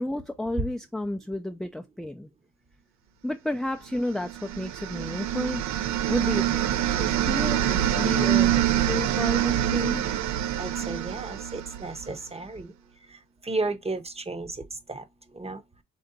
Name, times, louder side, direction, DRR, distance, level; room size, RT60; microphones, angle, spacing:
voice 1, 0.0-2.3 3.2-5.7 6.1-10.2, left 1 dB, ahead, 0.4 m, -32 dB
sound 1, 4.1-12.1, right 11 dB, 65° right, 0.6 m, -25 dB
voice 2, 10.6-12.7 13.1-13.2 13.4-15.0 15.3-15.6, right 3 dB, 20° right, 0.8 m, -33 dB
3.9 x 3.3 x 3.9 m
cardioid pair, 90°, 30 cm